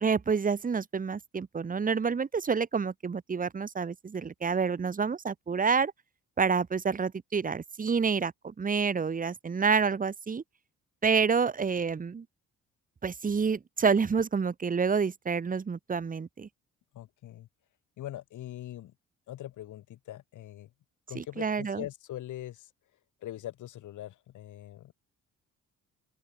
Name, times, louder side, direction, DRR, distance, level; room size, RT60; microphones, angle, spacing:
voice 1, 0.0-5.9 6.4-10.4 11.0-12.2 13.0-16.5 21.1-21.8, right 5 dB, 25° right, 1.1 m, -28 dB
voice 2, 16.9-17.5 18.0-18.9 19.3-20.7 21.1-22.7 23.2-24.9, left 13 dB, 80° left, 5.1 m, -42 dB
open air
cardioid pair, 90°, 30 cm